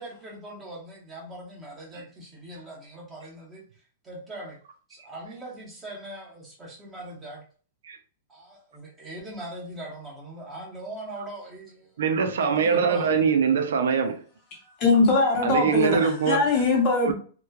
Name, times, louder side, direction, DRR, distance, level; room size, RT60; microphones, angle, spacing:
voice 1, 0.0-3.6 4.0-4.6 4.9-7.4 8.3-12.0 12.4-13.4, right 1 dB, 10° right, 0.9 m, -41 dB
voice 2, 12.0-14.2 15.4-16.4 17.0-17.1, right 6 dB, 85° right, 0.5 m, -23 dB
voice 3, 14.6-17.1, left 3 dB, 35° left, 0.7 m, -22 dB
3.0 x 2.1 x 2.3 m
hypercardioid pair, 160°, 0 cm